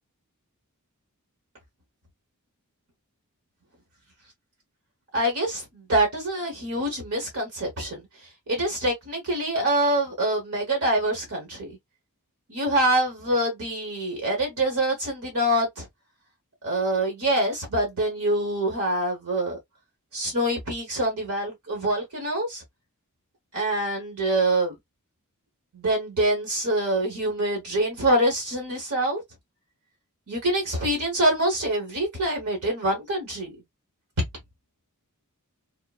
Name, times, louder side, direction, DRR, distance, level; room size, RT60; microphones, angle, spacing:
voice 1, 5.1-8.0 8.5-11.8 12.5-15.9 16.6-19.6 20.1-22.6 23.5-24.7 25.7-29.2 30.3-33.6, right 1 dB, 75° right, 1.2 m, -25 dB
3.6 x 2.0 x 2.4 m
head